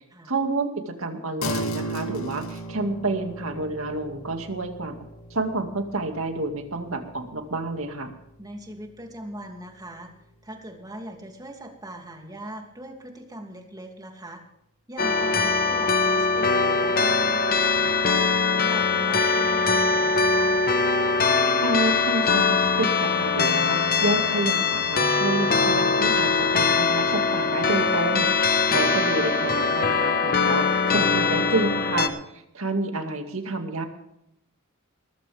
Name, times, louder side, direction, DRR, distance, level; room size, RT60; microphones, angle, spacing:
voice 1, 0.3-8.1 21.6-32.2 32.5-33.9, right 2 dB, 70° right, 5 dB, 2.2 m, -29 dB
sound 1, 1.4-11.1, right 1 dB, 75° left, 2.3 m, -37 dB
voice 2, 8.4-10.1 10.4-14.4 14.9-18.2 18.6-20.6, right 1 dB, 20° right, 3 dB, 2.8 m, -41 dB
sound 2, 15.0-32.1, left 4 dB, 45° left, 1.3 m, -22 dB
19.5 x 14.5 x 3.5 m, 0.78 s
head